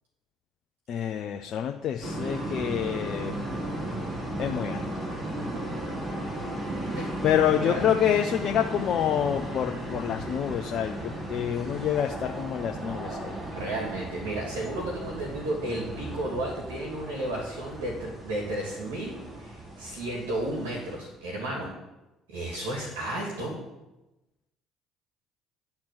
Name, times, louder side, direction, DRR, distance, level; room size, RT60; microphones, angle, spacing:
voice 1, 0.9-3.3 4.4-4.9 7.0-13.4, left 9 dB, 60° left, 4 dB, 0.7 m, -27 dB
sound 1, 2.0-21.0, right 1 dB, 30° right, 3.1 m, -35 dB
voice 2, 13.6-21.7 22.3-23.6, right 1 dB, 80° right, -1 dB, 2.7 m, -33 dB
12.0 x 4.4 x 7.8 m, 1.0 s
hypercardioid pair, 60°, 0 cm